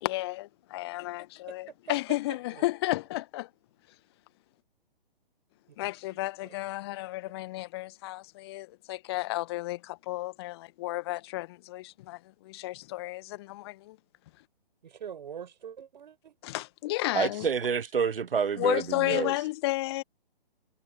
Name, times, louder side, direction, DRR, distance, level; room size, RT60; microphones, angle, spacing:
voice 1, 0.0-3.5 5.8-14.0 16.4-17.5 18.6-20.0, left 18 dB, 25° left, 1.2 m, -33 dB
voice 2, 1.5-2.0 2.5-2.6 5.7-5.8 6.1-6.6 14.8-16.4, right 8 dB, 50° right, 6.3 m, -44 dB
voice 3, 17.1-19.4, right 6 dB, 70° right, 0.8 m, -28 dB
figure-of-eight pair, 130°, 29 cm